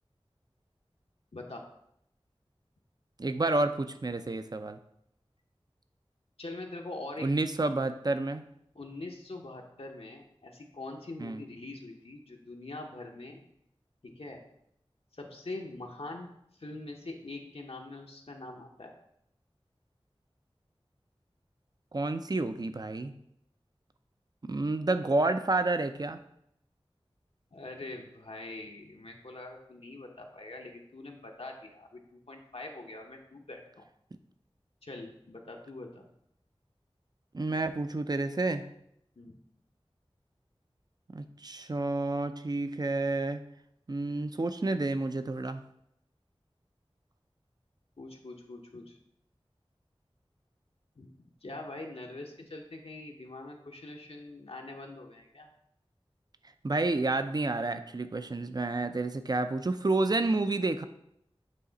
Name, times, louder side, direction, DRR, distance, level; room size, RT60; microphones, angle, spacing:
voice 1, 1.3-1.7 6.4-7.3 8.7-13.4 14.0-14.4 15.1-16.3 16.6-19.0 27.5-33.9 34.8-36.1 39.2-39.4 48.0-49.0 51.0-51.1 51.4-55.5, left 2 dB, 70° left, 1 dB, 0.8 m, -43 dB
voice 2, 3.2-4.8 7.2-8.4 11.2-11.4 21.9-23.1 24.5-26.2 37.3-38.6 41.1-43.4 43.9-45.6 56.6-60.8, right 2 dB, 40° right, 9 dB, 0.4 m, -30 dB
8.4 x 3.1 x 3.9 m, 0.75 s
wide cardioid pair, 45°, 10 cm